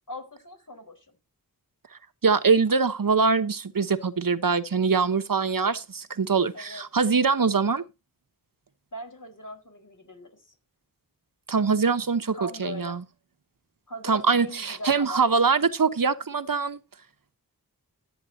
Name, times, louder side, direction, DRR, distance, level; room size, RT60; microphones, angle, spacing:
voice 1, 0.1-1.2 6.5-6.8 8.9-10.5 12.3-13.0 13.9-15.2, left 1 dB, 60° left, 4.3 m, -40 dB
voice 2, 2.2-7.8 11.5-13.0 14.0-16.8, right 5 dB, 65° right, 1.0 m, -23 dB
14.0 x 8.9 x 2.7 m
wide cardioid pair, 65°, 36 cm